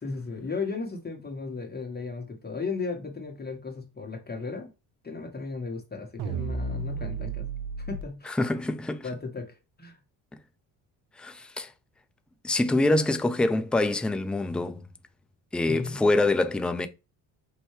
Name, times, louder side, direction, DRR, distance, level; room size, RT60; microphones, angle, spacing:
voice 1, 0.0-4.7 5.0-7.5 7.8-8.4 9.0-10.0 15.7-16.1, left 4 dB, 20° left, 1.3 m, -35 dB
sound 1, 6.2-8.0, right 4 dB, 55° right, 0.8 m, -33 dB
voice 2, 8.3-9.1 11.2-11.7 12.4-14.9 15.5-16.9, left 2 dB, ahead, 0.4 m, -25 dB
5.6 x 2.6 x 3.2 m
supercardioid pair, 70°, 46 cm